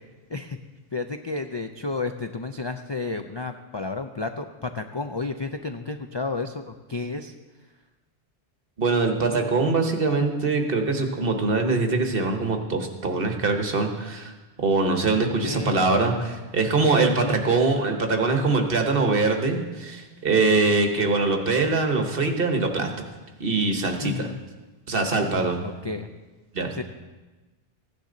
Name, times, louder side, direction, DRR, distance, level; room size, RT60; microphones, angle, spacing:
voice 1, 0.9-7.3 15.4-15.9 17.0-17.6 21.0-21.1 24.0-24.4 25.3-26.1 26.7-26.8, left 3 dB, 40° left, 7 dB, 0.4 m, -32 dB
voice 2, 8.8-14.3 14.6-22.9 23.4-24.2 24.9-25.7 26.5-26.7, right 3 dB, 55° right, 4 dB, 1.4 m, -23 dB
16.0 x 10.0 x 3.9 m, 1.2 s
omnidirectional pair, 1.1 m